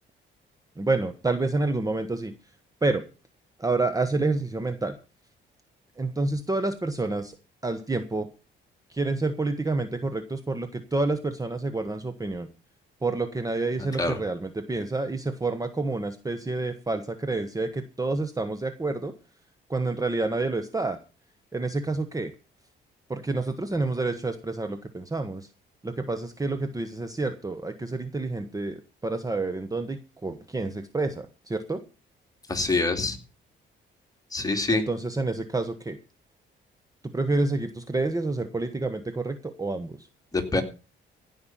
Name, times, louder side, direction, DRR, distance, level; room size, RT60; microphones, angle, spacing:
voice 1, 0.8-2.3 2.8-3.0 3.6-5.0 6.0-7.3 7.6-8.3 8.9-12.5 13.0-19.1 19.7-21.0 21.5-22.3 23.1-25.5 25.8-31.8 34.7-36.0 37.1-40.0, right 3 dB, 20° right, 9 dB, 1.2 m, -28 dB
voice 2, 32.5-33.2 34.3-34.8 40.3-40.6, left 3 dB, 20° left, 4 dB, 2.7 m, -25 dB
16.0 x 5.7 x 7.4 m, 0.34 s
cardioid pair, 90°, 20 cm